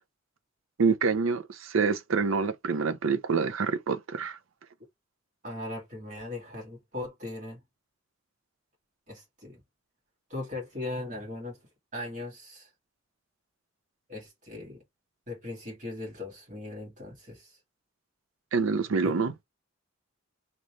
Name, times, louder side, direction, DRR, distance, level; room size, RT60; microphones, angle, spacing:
voice 1, 0.8-4.4 18.5-19.3, right 5 dB, 80° right, 0.6 m, -26 dB
voice 2, 5.4-7.6 9.1-9.6 10.3-11.6 11.9-12.7 14.1-14.8 15.3-17.6 19.0-19.2, left 2 dB, 40° right, 2.1 m, -39 dB
3.9 x 3.0 x 3.2 m
head